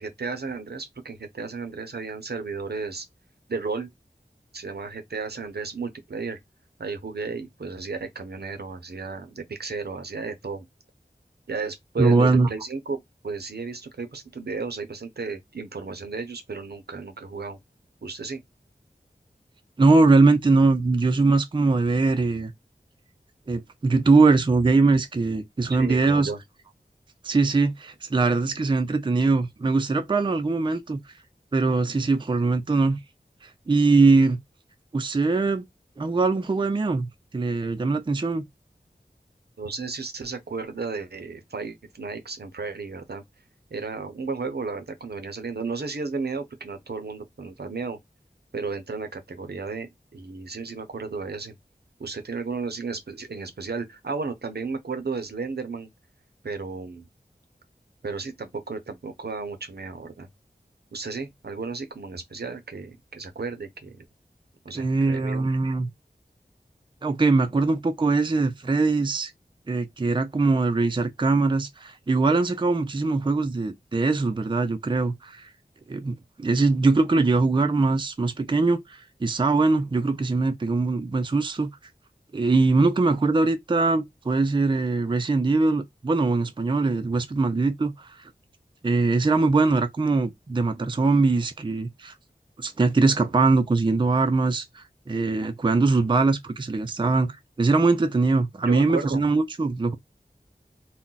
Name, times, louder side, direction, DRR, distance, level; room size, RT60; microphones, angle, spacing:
voice 1, 0.0-3.1 3.5-3.9 4.5-6.4 6.8-10.7 11.5-13.0 13.2-17.6 18.0-18.4 25.7-26.4 39.6-43.2 43.7-48.0 48.5-51.6 52.0-55.9 56.4-57.1 58.0-60.3 60.9-64.0 64.6-65.4 98.6-99.2, right 4 dB, 70° right, 0.6 m, -33 dB
voice 2, 12.0-12.5 19.8-22.5 23.5-26.3 27.2-31.0 31.5-33.0 33.4-34.4 34.9-35.6 36.0-38.5 64.7-65.9 67.0-69.3 69.7-75.5 75.9-81.7 82.3-88.1 88.8-92.1 92.6-100.0, right 3 dB, 30° right, 0.4 m, -22 dB
2.2 x 2.1 x 3.8 m
wide cardioid pair, 45°, 17 cm